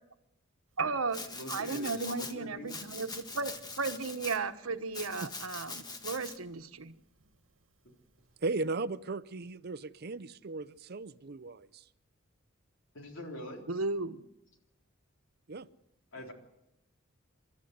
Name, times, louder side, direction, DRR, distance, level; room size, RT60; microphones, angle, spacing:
Piano, 0.7-8.7, right 6 dB, 65° right, 1.8 m, -51 dB
voice 1, 0.8-6.9 13.7-14.2, right 4 dB, 85° right, 1.2 m, -35 dB
Domestic sounds home sounds, 1.1-2.3 2.7-4.4 4.9-6.4, left 3 dB, 20° left, 1.6 m, -42 dB
voice 2, 1.3-2.8 12.9-13.7 16.1-16.3, equal, 65° left, 3.8 m, -43 dB
voice 3, 8.4-11.8 15.5-15.7, right 3 dB, 50° right, 0.7 m, -36 dB
29.0 x 13.0 x 8.1 m
head